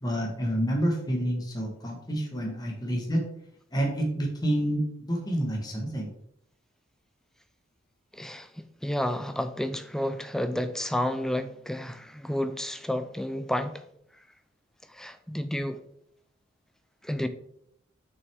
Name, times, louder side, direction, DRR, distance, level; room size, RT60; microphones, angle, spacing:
voice 1, 0.0-3.2 3.7-6.1, equal, 20° left, 1.3 m, -28 dB
voice 2, 8.1-13.8 14.9-15.8 17.0-17.3, left 1 dB, 5° left, 0.4 m, -31 dB
6.2 x 6.1 x 3.5 m
head